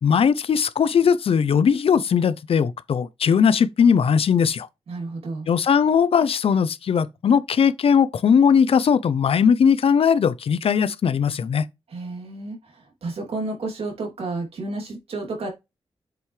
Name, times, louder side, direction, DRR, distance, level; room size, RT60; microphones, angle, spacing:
voice 1, 0.0-4.7 5.5-11.7, left 7 dB, 70° left, 0.7 m, -19 dB
voice 2, 4.9-5.5 11.9-15.5, right 3 dB, 75° right, 3.0 m, -31 dB
7.8 x 5.6 x 3.3 m
cardioid pair, 75°, 10 cm